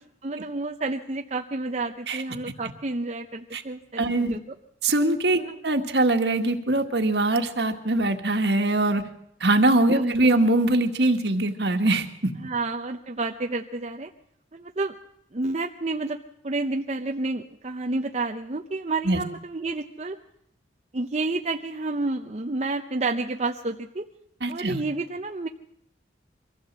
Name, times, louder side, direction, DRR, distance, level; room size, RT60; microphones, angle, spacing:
voice 1, 0.2-4.4 5.4-5.6 9.9-10.4 12.4-14.1 14.5-15.0 15.3-20.2 20.9-24.1 24.5-25.5, right 3 dB, 35° right, 4 dB, 0.7 m, -30 dB
voice 2, 4.0-4.4 4.8-9.0 9.4-12.3 19.0-19.2 24.4-24.8, right 2 dB, 65° right, 6 dB, 1.8 m, -22 dB
24.0 x 15.0 x 7.5 m, 0.75 s
head